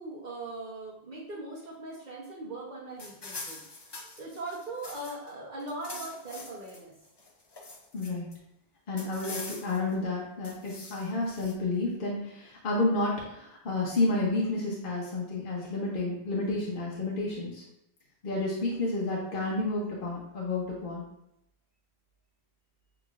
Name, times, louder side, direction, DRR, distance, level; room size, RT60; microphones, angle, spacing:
voice 1, 0.0-3.6 3.9-7.0, right 2 dB, 45° right, -6 dB, 1.0 m, -40 dB
sound 1, 3.0-5.3 5.6-6.8 7.2-8.4 9.0-9.9 10.4-11.5, left 3 dB, 35° left, 0.4 m, -44 dB
voice 2, 7.9-8.3 8.9-17.6 18.2-21.0, left 2 dB, 55° left, -4 dB, 1.0 m, -30 dB
6.8 x 2.9 x 2.4 m, 0.82 s
omnidirectional pair, 1.1 m